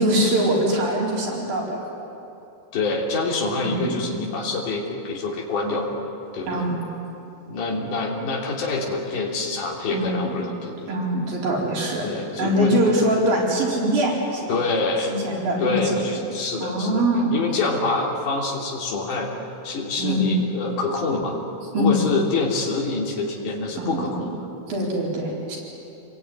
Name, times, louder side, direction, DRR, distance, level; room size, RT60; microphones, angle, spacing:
voice 1, 0.0-1.9 3.6-3.9 6.5-6.7 9.9-10.3 10.9-12.1 12.4-14.5 15.1-16.0 16.6-17.3 20.0-20.4 21.7-22.0 23.8-24.3 24.7-25.6, right 1 dB, 85° right, -3 dB, 6.3 m, -23 dB
voice 2, 2.7-5.9 6.3-6.7 7.5-10.9 12.0-12.7 14.5-15.1 15.6-19.3 19.6-21.4 21.7-24.3, left 3 dB, 65° left, -2 dB, 4.6 m, -26 dB
27.5 x 20.5 x 9.5 m, 2.9 s
omnidirectional pair, 4.0 m